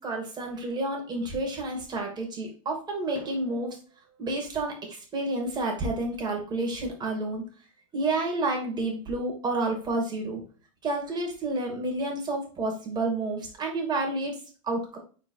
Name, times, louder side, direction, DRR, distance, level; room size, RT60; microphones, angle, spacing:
voice 1, 0.0-3.7 4.2-7.4 7.9-10.4 10.8-14.4 14.6-15.0, right 2 dB, 25° right, 1 dB, 2.7 m, -30 dB
4.8 x 4.4 x 4.8 m, 0.39 s
supercardioid pair, 120°, 17 cm